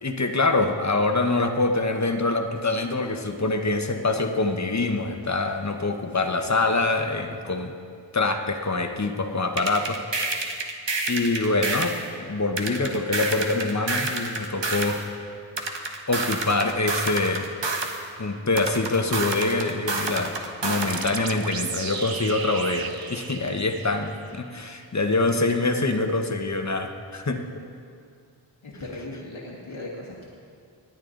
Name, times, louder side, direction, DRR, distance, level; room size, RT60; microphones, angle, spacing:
voice 1, 0.0-7.7 8.1-10.0 11.1-15.0 16.1-17.5 18.2-20.3 20.6-27.5, left 3 dB, 35° left, 5 dB, 1.2 m, -25 dB
sound 1, 9.6-12.0 12.6-15.0 15.6-18.0 18.6-21.0, right 3 dB, 65° right, 1.3 m, -28 dB
sound 2, 20.9-24.4, right 5 dB, 50° right, 0.9 m, -34 dB
voice 2, 28.6-30.3, left 2 dB, 80° left, -4 dB, 2.0 m, -38 dB
20.5 x 9.0 x 3.9 m, 2.3 s
cardioid pair, 40°, 47 cm